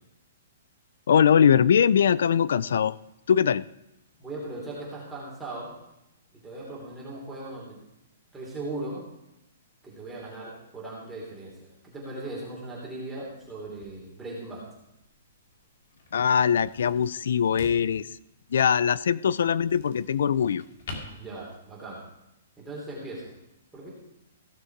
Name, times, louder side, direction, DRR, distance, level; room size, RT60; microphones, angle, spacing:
voice 1, 1.1-2.9 3.3-3.6 16.1-18.1 18.5-20.6, left 8 dB, 75° left, 20 dB, 0.4 m, -21 dB
voice 2, 4.2-5.8 6.3-7.8 8.3-9.1 9.8-14.7 21.1-22.0 22.6-23.3 23.7-23.9, right 2 dB, 10° right, -5 dB, 2.9 m, -38 dB
sound 1, 13.2-22.0, left 3 dB, 60° left, 2.1 m, -47 dB
16.0 x 6.5 x 4.6 m, 0.87 s
hypercardioid pair, 160°, 0 cm